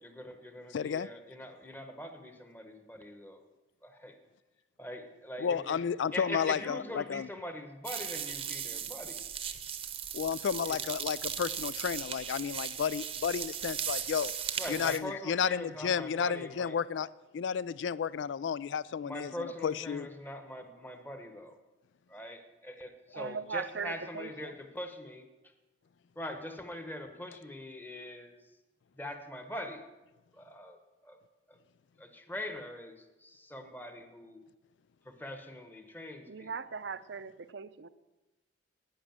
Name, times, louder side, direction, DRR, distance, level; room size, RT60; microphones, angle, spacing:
voice 1, 0.0-3.5 3.8-4.2 4.8-5.8 6.1-9.2 10.7-10.8 14.6-16.8 19.0-21.6 22.1-25.5 26.1-28.4 29.0-29.9 30.3-31.2 31.5-31.6 32.0-34.4 35.0-36.5, left 1 dB, 10° left, 1.1 m, -43 dB
voice 2, 0.7-1.1 5.4-7.3 10.1-14.3 14.7-17.1 17.3-20.1, left 7 dB, 80° left, 0.4 m, -32 dB
sound 1, 7.8-15.0, right 8 dB, 30° right, 0.8 m, -37 dB
voice 3, 23.1-24.5 36.3-37.9, right 5 dB, 75° right, 0.6 m, -39 dB
11.0 x 9.7 x 7.5 m
head